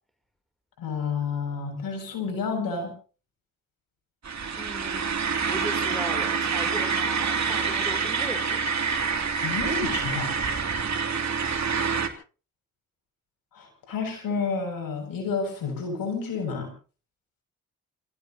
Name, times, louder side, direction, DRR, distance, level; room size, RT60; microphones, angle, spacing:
voice 1, 0.8-2.9 9.4-10.3 13.5-16.7, left 5 dB, 90° left, 3 dB, 7.4 m, -30 dB
sound 1, 4.2-12.1, right 5 dB, 55° right, 2.9 m, -27 dB
voice 2, 4.6-5.1 5.5-8.7, equal, ahead, 6 dB, 3.6 m, -38 dB
28.5 x 16.5 x 3.0 m, 0.37 s
cardioid pair, 60°, 33 cm